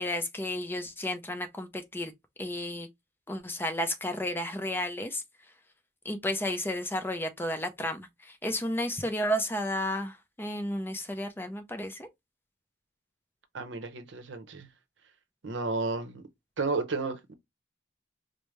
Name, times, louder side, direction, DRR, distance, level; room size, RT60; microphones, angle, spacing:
voice 1, 0.0-2.1 2.4-2.9 3.3-5.2 6.0-12.1, left 1 dB, 10° left, 0.5 m, -32 dB
voice 2, 13.5-14.7 15.4-16.2 16.6-17.3, right 3 dB, 80° right, 0.7 m, -32 dB
5.0 x 2.1 x 3.1 m
head